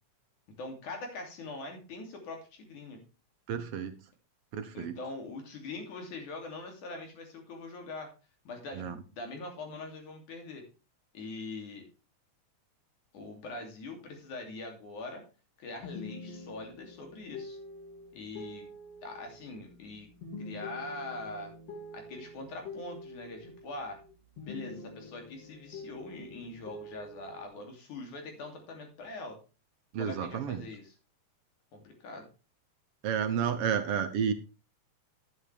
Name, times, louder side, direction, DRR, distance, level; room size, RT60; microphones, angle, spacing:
voice 1, 0.6-3.0 4.7-8.1 8.4-10.6 11.1-11.9 13.1-15.2 15.6-17.6 18.1-18.7 19.0-20.1 20.4-21.5 21.9-24.0 24.4-29.4 30.0-31.0 31.7-32.3, left 2 dB, 75° left, 3 dB, 4.3 m, -43 dB
voice 2, 3.5-3.9 4.5-4.9 8.8-8.9 29.9-30.6 33.0-34.3, right 7 dB, 70° right, 9 dB, 1.5 m, -31 dB
sound 1, 15.8-24.1 24.4-27.5, left 2 dB, 50° left, 4.0 m, -46 dB
11.5 x 9.4 x 3.4 m, 0.32 s
omnidirectional pair, 3.5 m